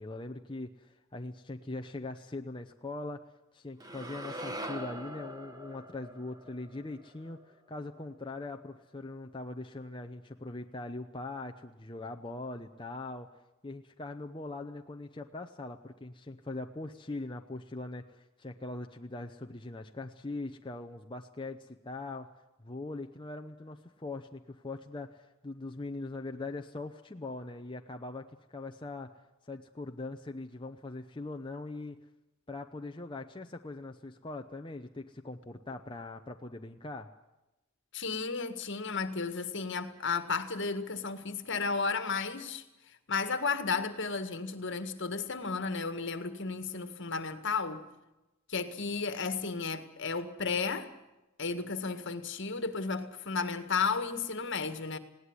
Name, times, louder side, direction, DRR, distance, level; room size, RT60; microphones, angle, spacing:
voice 1, 0.0-3.3 3.5-13.3 13.6-22.3 22.6-29.1 29.4-32.0 32.5-37.1, left 2 dB, 20° left, 0.8 m, -41 dB
sound 1, 3.8-8.0, equal, 15° right, 1.6 m, -43 dB
voice 2, 37.9-42.6 43.1-47.8 48.5-50.9 51.4-55.0, left 4 dB, 55° left, 1.8 m, -33 dB
20.0 x 17.5 x 9.7 m
head